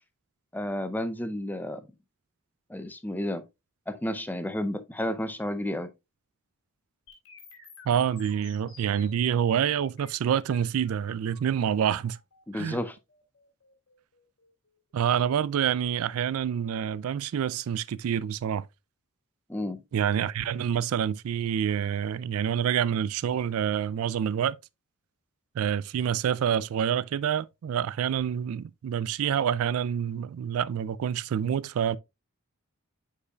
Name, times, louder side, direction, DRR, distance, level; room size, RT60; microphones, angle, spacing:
voice 1, 0.5-1.8 2.7-3.5 3.9-5.9 12.5-13.0 19.5-19.8, left 1 dB, 10° left, 0.5 m, -31 dB
sound 1, 7.1-15.0, left 4 dB, 65° left, 2.7 m, -54 dB
voice 2, 7.9-12.2 12.5-12.8 14.9-18.7 19.9-24.6 25.6-32.0, right 8 dB, 70° right, 0.3 m, -27 dB
8.1 x 5.6 x 2.3 m
head